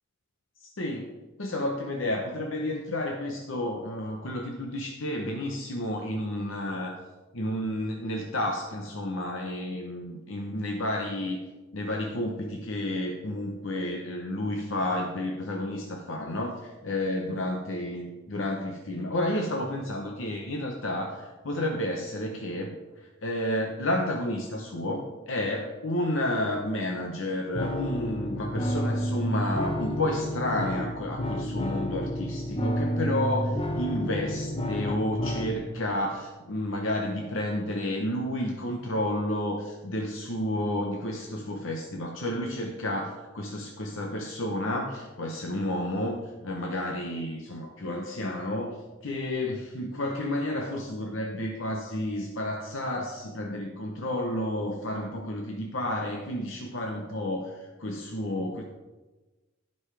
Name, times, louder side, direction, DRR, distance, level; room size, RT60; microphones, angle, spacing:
voice 1, 0.6-1.1 1.4-7.0 7.3-11.4 11.7-48.8 49.0-58.6, left 1 dB, 70° left, 1 dB, 0.9 m, -31 dB
sound 1, 27.5-35.5, equal, 30° left, 0.8 m, -30 dB
16.0 x 5.4 x 3.3 m, 1.2 s
head